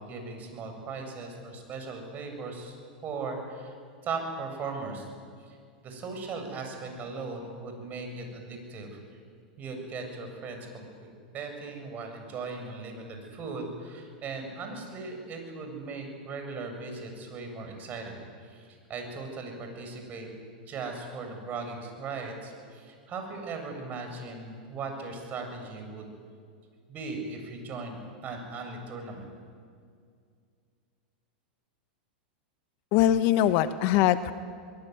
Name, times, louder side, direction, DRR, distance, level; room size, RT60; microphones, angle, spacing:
voice 1, 0.0-2.8 3.0-3.8 4.0-5.1 5.4-5.6 5.8-9.0 9.6-10.9 11.3-18.1 18.4-20.3 20.7-26.1 26.9-29.2, right 4 dB, 35° right, 4 dB, 7.5 m, -38 dB
voice 2, 32.9-34.3, left 12 dB, 50° left, 12 dB, 1.3 m, -22 dB
22.5 x 22.5 x 9.5 m, 2.2 s
hypercardioid pair, 110°, 5 cm